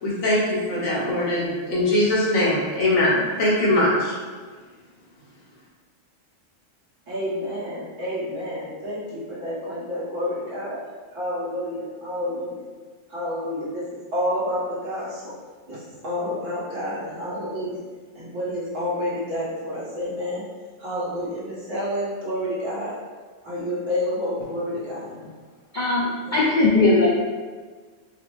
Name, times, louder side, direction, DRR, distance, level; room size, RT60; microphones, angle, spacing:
voice 1, 0.0-4.1, left 1 dB, 85° left, -7 dB, 1.5 m, -21 dB
voice 2, 7.1-10.8 11.1-12.6 13.1-13.8 14.1-15.3 15.7-15.8 16.0-17.8 18.1-20.4 20.8-22.9 23.4-25.1 26.2-26.3, left 1 dB, 70° right, -9 dB, 1.6 m, -29 dB
voice 3, 25.7-27.1, left 2 dB, 60° left, -6 dB, 0.5 m, -19 dB
4.8 x 2.0 x 3.0 m, 1.5 s
omnidirectional pair, 1.4 m